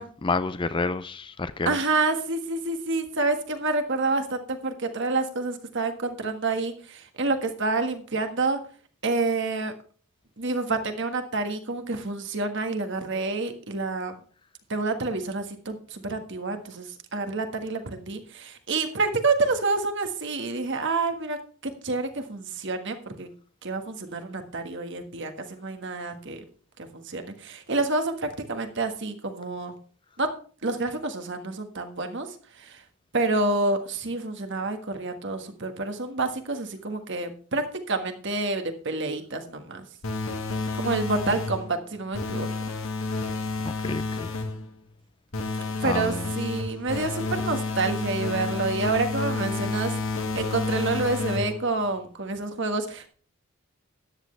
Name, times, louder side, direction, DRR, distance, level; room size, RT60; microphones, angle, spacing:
voice 1, 0.0-1.8 43.6-44.3 45.8-46.3, left 3 dB, 20° left, 0.4 m, -29 dB
voice 2, 1.6-8.6 9.0-9.7 10.4-14.1 14.7-21.4 21.6-23.3 23.6-26.4 26.9-29.7 30.2-30.3 30.6-32.3 32.6-32.8 33.1-39.8 40.7-42.5 45.8-49.9 50.3-53.1, right 3 dB, 55° right, 1.6 m, -28 dB
sound 1, 40.0-41.7 42.1-44.6 45.3-51.7, left 3 dB, 65° left, 1.9 m, -30 dB
13.5 x 10.0 x 3.3 m
head